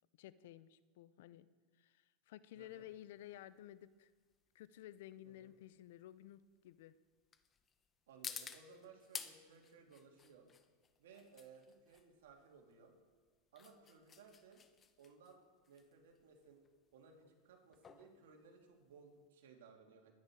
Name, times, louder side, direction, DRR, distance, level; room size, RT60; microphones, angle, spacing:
voice 1, 0.2-1.5 1.8-4.1 4.5-6.9, left 13 dB, 75° left, 16 dB, 0.6 m, -54 dB
voice 2, 2.5-2.9 5.2-5.5 8.1-10.5 11.0-12.9 13.5-14.6 15.0-15.4 15.7-16.6 16.9-20.1, right 5 dB, 85° right, 1 dB, 2.7 m, -61 dB
sound 1, 2.6-19.3, left 6 dB, 25° left, 0.9 m, -54 dB
20.5 x 9.7 x 4.8 m, 1.4 s
supercardioid pair, 125°, 0 cm